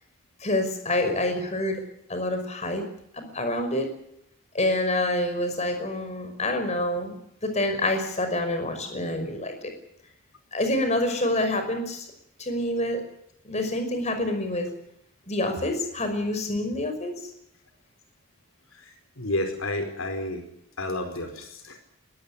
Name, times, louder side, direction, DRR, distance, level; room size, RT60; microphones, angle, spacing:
voice 1, 0.4-1.8 2.1-2.8 3.1-3.9 4.5-7.1 7.4-9.7 10.5-12.1 12.4-13.0 13.5-14.7 15.3-17.1, left 1 dB, 30° left, 7 dB, 5.5 m, -27 dB
voice 2, 19.2-20.4 20.8-21.8, left 1 dB, 70° left, 6 dB, 4.7 m, -30 dB
21.0 x 18.5 x 9.8 m, 0.76 s
head